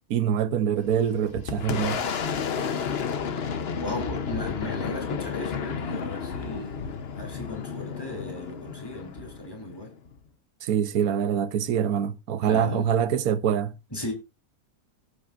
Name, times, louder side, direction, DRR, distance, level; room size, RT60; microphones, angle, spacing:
voice 1, 0.1-2.0 10.6-13.8, right 8 dB, 75° right, 1.3 m, -25 dB
Boom, 0.8-10.2, left 6 dB, 50° left, 1.0 m, -32 dB
voice 2, 3.8-9.9 12.4-12.9 13.9-14.1, left 1 dB, 15° left, 3.6 m, -36 dB
18.0 x 8.6 x 2.5 m
omnidirectional pair, 1.6 m